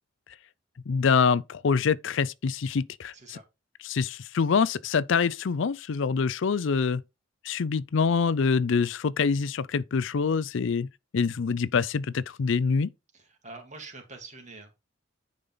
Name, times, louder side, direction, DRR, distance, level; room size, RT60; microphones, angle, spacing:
voice 1, 0.9-3.4 3.8-7.0 7.4-10.9 11.1-12.9, left 5 dB, 70° left, 0.5 m, -25 dB
voice 2, 3.1-3.4 13.1-14.7, right 3 dB, 40° right, 2.8 m, -45 dB
9.9 x 5.3 x 3.9 m
head